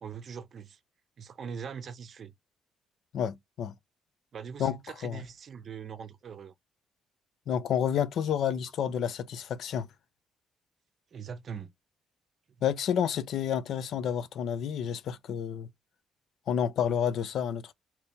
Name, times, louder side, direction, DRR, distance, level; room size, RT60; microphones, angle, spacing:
voice 1, 0.0-0.8 1.2-2.3 4.3-6.5 11.1-11.7, right 7 dB, 55° right, 0.6 m, -41 dB
voice 2, 3.1-3.7 4.6-5.2 7.5-9.9 12.6-15.7 16.5-17.7, left 8 dB, 70° left, 0.5 m, -30 dB
2.9 x 2.7 x 3.5 m
cardioid pair, 90°, 0 cm